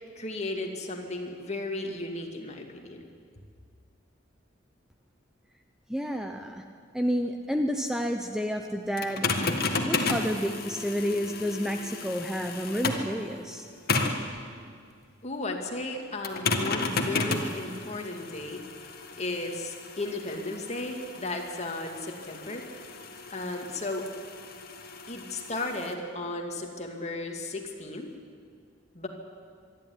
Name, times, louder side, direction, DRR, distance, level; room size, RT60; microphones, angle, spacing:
voice 1, 0.2-3.0 15.2-22.6 23.3-24.1 25.1-28.1 28.9-29.1, left 2 dB, 35° left, 3 dB, 2.4 m, -35 dB
voice 2, 5.9-6.6 6.9-9.3 9.8-13.7, equal, 5° right, 5 dB, 0.8 m, -30 dB
sound 1, 9.0-13.2 13.9-14.3 16.2-25.9, left 3 dB, 55° left, 1.9 m, -33 dB
24.5 x 12.0 x 9.9 m, 2.2 s
head